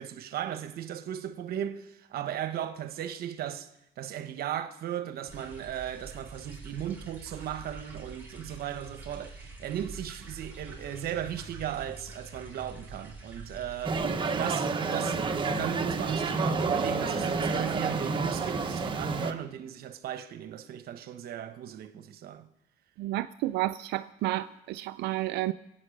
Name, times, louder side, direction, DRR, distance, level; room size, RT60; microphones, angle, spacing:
voice 1, 0.0-3.7 4.0-14.0 14.4-22.5, right 10 dB, 65° right, 1.1 m, -36 dB
sound 1, 5.3-14.0, right 2 dB, 10° right, 4.5 m, -46 dB
sound 2, 13.8-19.3, right 4 dB, 30° right, 1.3 m, -29 dB
voice 2, 23.0-25.5, right 16 dB, 80° right, 0.5 m, -31 dB
23.0 x 9.0 x 6.4 m
cardioid pair, 110°, 17 cm